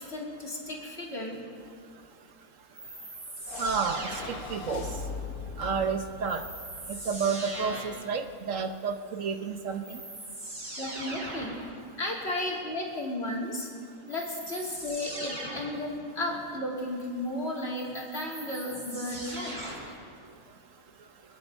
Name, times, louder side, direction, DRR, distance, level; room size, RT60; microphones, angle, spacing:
voice 1, 0.0-1.4 3.5-3.6 10.8-11.6 12.0-13.7 14.1-19.7, left 1 dB, 45° left, -2 dB, 2.9 m, -34 dB
sound 1, 2.7-4.8 6.3-8.1 9.4-9.5 9.8-11.7 14.1-15.9 17.6-20.0, right 1 dB, 40° right, 3.1 m, -40 dB
sound 2, 3.4-7.9, left 4 dB, 75° left, 1.6 m, -41 dB
voice 2, 3.6-4.9 5.6-6.4 6.9-10.0, right 5 dB, 65° right, 7 dB, 1.2 m, -31 dB
25.5 x 9.8 x 5.3 m, 2.4 s
omnidirectional pair, 1.5 m